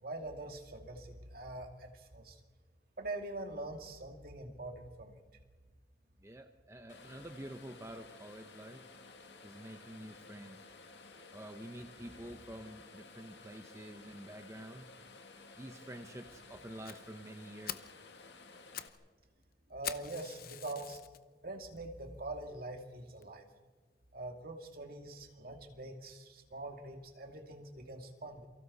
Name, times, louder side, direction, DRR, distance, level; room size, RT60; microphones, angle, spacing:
voice 1, 0.0-2.4 3.0-5.2 19.7-21.0 21.4-23.5 24.1-28.5, right 2 dB, 55° right, 3 dB, 2.5 m, -44 dB
voice 2, 6.2-8.9 9.4-10.6 11.3-14.9 15.6-17.9, right 1 dB, 15° right, 5 dB, 1.0 m, -48 dB
sound 1, 6.9-18.9, left 3 dB, 75° left, 2.0 m, -55 dB
Fire, 16.8-17.0 17.4-17.5 17.7-18.0 18.5-19.0 19.2-19.3 19.8-21.2 21.8-21.9 22.4-22.5 22.8-22.9 23.2-23.3, left 10 dB, 55° left, 0.8 m, -43 dB
28.5 x 24.0 x 4.2 m, 1.4 s
head